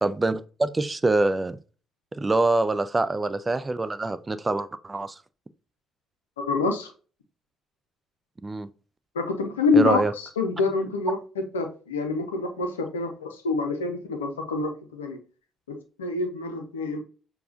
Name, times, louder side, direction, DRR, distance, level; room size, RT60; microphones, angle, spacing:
voice 1, 0.0-1.6 2.1-5.2 8.4-8.7 9.7-10.1, right 2 dB, 20° right, 0.4 m, -25 dB
voice 2, 6.4-6.9 9.1-10.0 10.4-15.2 15.7-17.0, left 3 dB, 80° left, 0.6 m, -26 dB
6.6 x 2.4 x 2.5 m
figure-of-eight pair, 45°, 0 cm